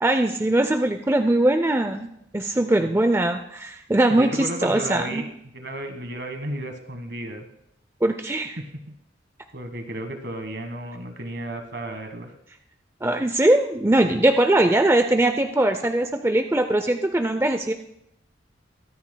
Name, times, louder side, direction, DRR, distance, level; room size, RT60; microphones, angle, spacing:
voice 1, 0.0-2.1 2.3-5.2 8.0-8.6 13.0-17.7, right 1 dB, 15° right, 6 dB, 0.5 m, -21 dB
voice 2, 4.1-5.3 5.5-7.5 8.9-9.0 9.5-12.3, right 1 dB, 60° right, 6 dB, 1.4 m, -33 dB
23.5 x 9.5 x 2.3 m, 0.77 s
head